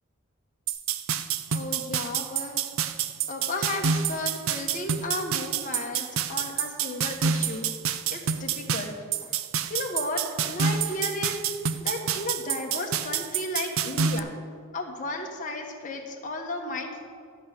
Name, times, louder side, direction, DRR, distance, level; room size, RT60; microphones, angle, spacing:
sound 1, 0.7-14.2, right 7 dB, 65° right, 0.5 m, -28 dB
voice 1, 1.5-2.6 3.3-7.7 8.1-8.9 9.2-9.4 9.7-11.4 11.8-14.3 14.7-17.0, left 2 dB, 35° left, 1 dB, 1.2 m, -34 dB
13.5 x 5.2 x 8.3 m, 2.1 s
head